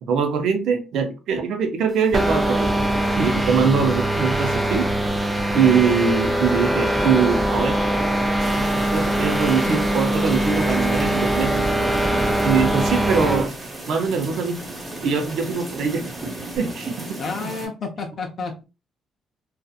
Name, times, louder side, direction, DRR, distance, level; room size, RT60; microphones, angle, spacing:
voice 1, 0.0-2.7 3.1-4.9 5.5-7.8 8.9-11.7 12.4-13.5 13.9-14.6 15.0-16.1 16.6-17.2, right 6 dB, 75° right, 0.6 m, -22 dB
sound 1, 2.1-13.5, right 1 dB, 10° right, 0.5 m, -22 dB
sound 2, 8.4-17.7, right 2 dB, 30° right, 1.1 m, -35 dB
voice 2, 17.2-18.6, left 4 dB, 55° left, 0.6 m, -30 dB
2.6 x 2.4 x 2.4 m
cardioid pair, 90°, 0 cm